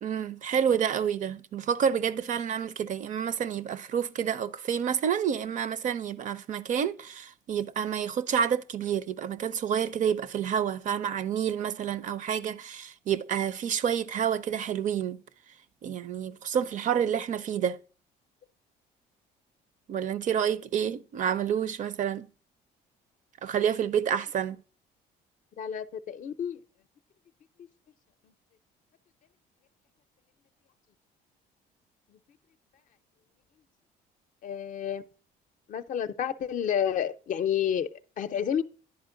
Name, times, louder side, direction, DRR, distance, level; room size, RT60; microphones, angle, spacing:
voice 1, 0.0-15.2 15.8-17.8 19.9-22.3 23.4-24.6, right 8 dB, 50° right, 0.4 m, -29 dB
voice 2, 25.6-26.6 34.4-35.0 35.7-38.6, left 9 dB, 50° left, 0.5 m, -30 dB
10.5 x 4.4 x 3.7 m
cardioid pair, 110°, 17 cm